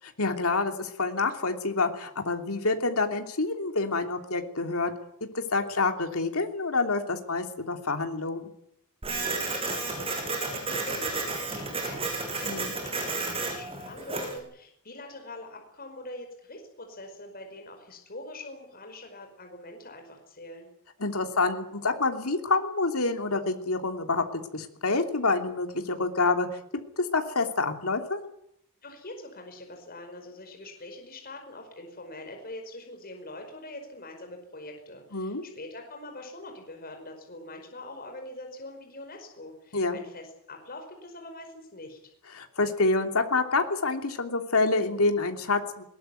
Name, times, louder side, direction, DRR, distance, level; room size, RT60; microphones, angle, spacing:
voice 1, 0.2-4.9 5.2-8.5 12.4-12.7 21.0-28.2 35.1-35.4 39.7-40.0 42.3-45.8, left 3 dB, 75° left, 5 dB, 3.1 m, -27 dB
voice 2, 9.0-20.7 28.8-42.1, left 2 dB, 40° left, 4 dB, 5.1 m, -44 dB
Printer, 9.0-14.4, right 3 dB, 25° right, 6.8 m, -32 dB
21.5 x 19.5 x 9.4 m, 0.74 s
head